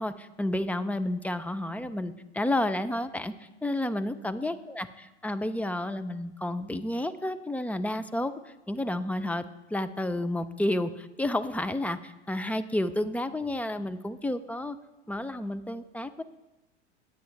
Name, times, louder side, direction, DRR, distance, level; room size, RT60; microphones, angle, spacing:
voice 1, 0.0-3.3 3.6-4.9 5.2-9.4 9.7-14.8 15.1-16.2, left 1 dB, 5° left, 11 dB, 0.4 m, -31 dB
20.0 x 8.2 x 3.3 m, 1.0 s
hypercardioid pair, 90°, 34 cm